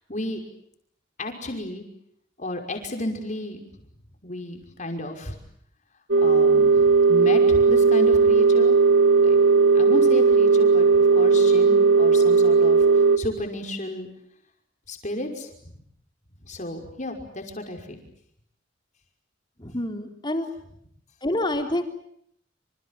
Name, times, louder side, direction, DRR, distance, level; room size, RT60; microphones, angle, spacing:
voice 1, 0.1-0.4 1.2-1.8 2.4-3.6 4.2-5.3 6.2-6.8 7.1-8.8 9.2-9.4 9.7-10.9 11.1-12.8 13.2-14.1 14.9-15.5 16.4-18.0, left 1 dB, 40° left, 4 dB, 5.7 m, -32 dB
sound 1, 6.1-13.2, right 4 dB, 90° right, 2.3 m, -17 dB
voice 2, 19.6-20.5 21.2-21.8, left 1 dB, 25° left, 4 dB, 3.8 m, -27 dB
28.0 x 27.5 x 7.6 m, 0.70 s
head